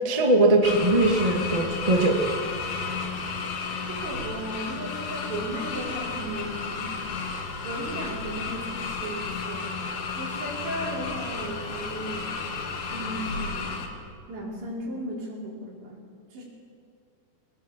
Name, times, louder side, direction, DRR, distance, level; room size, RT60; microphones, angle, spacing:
voice 1, 0.0-2.3, right 2 dB, 35° right, 1 dB, 0.5 m, -21 dB
sound 1, 0.6-13.9, left 4 dB, 65° left, 3.9 m, -33 dB
voice 2, 3.9-6.9 7.6-9.7 10.1-13.8 14.3-16.0 16.3-16.4, right 1 dB, 80° right, -3 dB, 6.8 m, -36 dB
22.5 x 19.5 x 7.5 m, 2.3 s
omnidirectional pair, 4.9 m